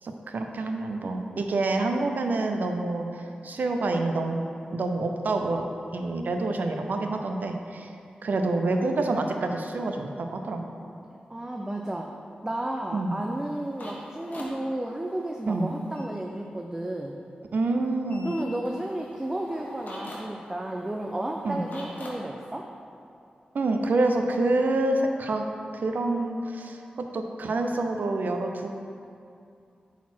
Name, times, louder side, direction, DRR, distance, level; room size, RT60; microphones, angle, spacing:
voice 1, 0.0-4.4 4.7-5.7 5.9-7.9 8.2-10.6 12.9-13.2 15.5-15.7 17.5-18.3 21.4-21.6 23.5-25.4 25.7-28.7, right 2 dB, 75° right, 4 dB, 0.6 m, -27 dB
voice 2, 11.3-12.1 12.4-17.2 18.2-22.6, right 1 dB, 20° right, 1 dB, 0.5 m, -32 dB
sound 1, 13.1-16.1 18.1-22.1, left 1 dB, 70° left, 1.3 m, -44 dB
8.4 x 4.1 x 4.4 m, 2.5 s
wide cardioid pair, 80°, 3 cm